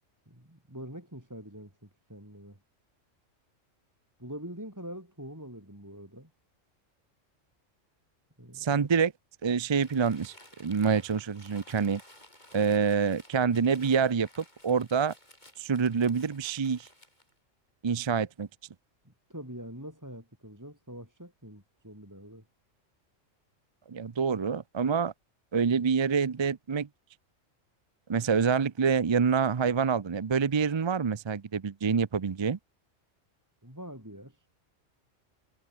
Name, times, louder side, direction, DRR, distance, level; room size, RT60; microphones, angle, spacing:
voice 1, 0.3-2.6 4.2-6.3 8.4-8.9 19.0-22.4 33.6-34.5, equal, 15° right, 4.3 m, -44 dB
voice 2, 8.6-9.1 9.4-10.3 10.6-12.0 12.5-15.1 15.6-16.9 17.8-18.5 23.9-25.1 25.5-26.9 28.1-32.6, right 6 dB, 40° right, 0.4 m, -26 dB
Crumpling crinkling, 9.7-17.3, left 1 dB, 35° left, 7.8 m, -55 dB
omnidirectional pair, 1.3 m